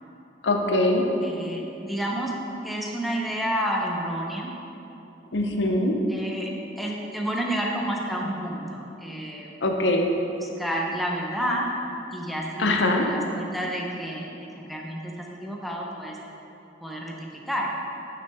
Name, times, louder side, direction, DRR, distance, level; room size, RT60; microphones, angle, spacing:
voice 1, 0.4-1.0 5.3-5.9 9.6-10.1 12.6-13.1, left 2 dB, 75° left, 3 dB, 0.6 m, -22 dB
voice 2, 1.2-2.3 2.6-4.5 6.1-6.5 6.8-9.6 10.4-11.7 12.1-16.2 16.8-17.1 17.5-17.7, equal, ahead, -2 dB, 0.6 m, -30 dB
6.0 x 5.7 x 3.5 m, 2.9 s
head